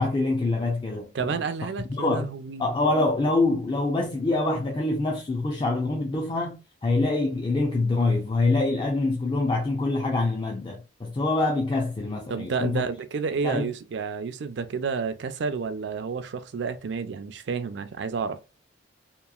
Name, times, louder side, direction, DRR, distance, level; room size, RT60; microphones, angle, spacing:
voice 1, 0.0-1.3 1.9-2.3 2.6-12.8 13.4-13.7, left 2 dB, 25° left, 0.4 m, -25 dB
voice 2, 1.1-2.7 12.3-18.4, right 5 dB, 65° right, 0.4 m, -30 dB
2.9 x 2.4 x 2.3 m
head